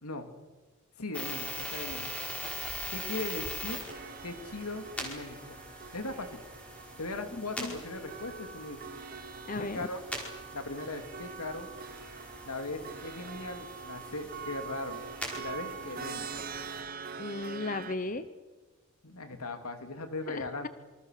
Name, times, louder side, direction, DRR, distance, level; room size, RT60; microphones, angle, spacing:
voice 1, 1.0-2.1 2.9-3.8 4.2-5.6 5.9-6.4 7.0-8.8 9.6-10.0 10.5-11.7 12.4-15.0 15.3-16.4 19.0-20.7, left 2 dB, 90° left, 6 dB, 3.0 m, -39 dB
sound 1, 1.1-16.8, equal, 5° left, 5.2 m, -42 dB
sound 2, 3.9-18.0, right 6 dB, 40° right, 1.3 m, -44 dB
voice 2, 7.4-7.8 9.5-9.8 17.2-18.3 20.3-20.5, left 2 dB, 35° left, 12 dB, 0.9 m, -35 dB
27.5 x 25.0 x 6.8 m, 1.3 s
head